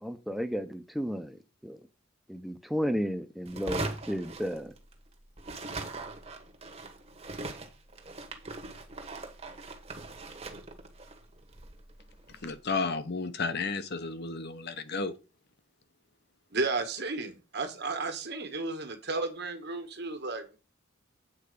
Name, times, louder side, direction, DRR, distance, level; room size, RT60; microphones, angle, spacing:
voice 1, 0.0-1.8 2.3-4.7, equal, ahead, 0.8 m, -33 dB
sound 1, 3.5-5.1 5.4-12.6, right 2 dB, 30° right, 1.4 m, -40 dB
voice 2, 12.4-15.1, left 4 dB, 55° left, 1.0 m, -32 dB
voice 3, 16.5-20.6, right 3 dB, 55° right, 1.6 m, -33 dB
8.6 x 4.6 x 6.8 m
head